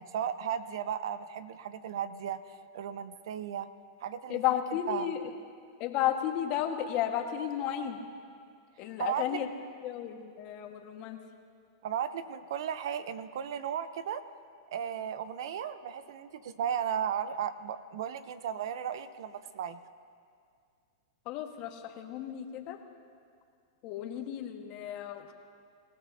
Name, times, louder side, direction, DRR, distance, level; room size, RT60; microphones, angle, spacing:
voice 1, 0.0-3.7 4.0-4.4 4.9-5.2 9.0-9.4 11.8-14.2 14.7-19.8, right 8 dB, 70° right, 13 dB, 0.8 m, -35 dB
voice 2, 4.3-5.2 5.8-8.0 8.8-9.5 9.8-11.2 21.2-22.8 23.8-25.3, left 11 dB, 45° left, 4 dB, 1.6 m, -33 dB
26.5 x 16.5 x 2.8 m, 2.3 s
hypercardioid pair, 120°, 2 cm